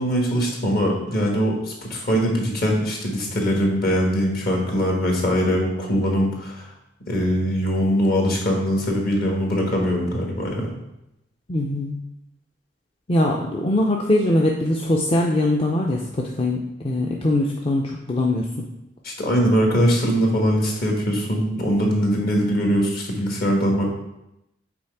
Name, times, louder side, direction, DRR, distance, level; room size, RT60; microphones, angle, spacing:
voice 1, 0.0-6.6 7.1-10.7 19.0-23.9, equal, 55° left, 0 dB, 1.5 m, -22 dB
voice 2, 11.5-12.0 13.1-18.7, left 1 dB, 30° left, -1 dB, 0.5 m, -22 dB
6.1 x 4.2 x 4.5 m, 0.88 s
head